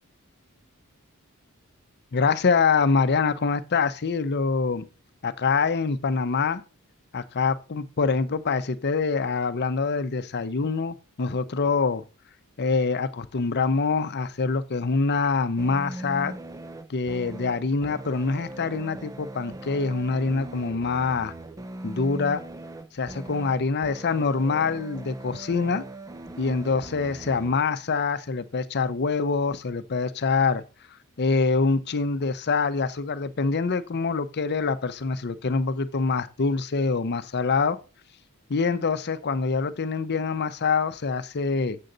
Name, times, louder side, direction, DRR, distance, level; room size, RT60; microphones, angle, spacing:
voice 1, 2.1-4.9 5.2-6.6 7.1-12.0 12.6-16.3 16.9-21.3 21.8-22.4 22.9-25.8 26.4-30.6 31.2-37.8 38.5-41.8, left 4 dB, 50° left, 0.6 m, -25 dB
sound 1, 15.6-27.6, right 1 dB, 15° right, 0.4 m, -40 dB
7.9 x 7.6 x 3.9 m
head